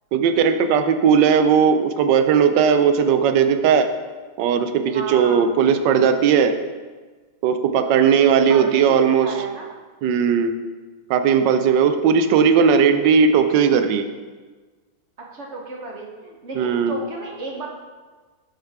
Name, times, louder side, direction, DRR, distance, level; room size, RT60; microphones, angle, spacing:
voice 1, 0.1-3.9 4.4-6.5 7.4-9.3 10.0-10.5 11.1-14.1 16.6-17.0, right 7 dB, 70° right, 8 dB, 1.1 m, -17 dB
voice 2, 4.9-5.5 8.3-9.7 15.3-17.7, right 2 dB, 45° right, -1 dB, 1.0 m, -33 dB
12.0 x 5.0 x 3.5 m, 1.4 s
omnidirectional pair, 2.3 m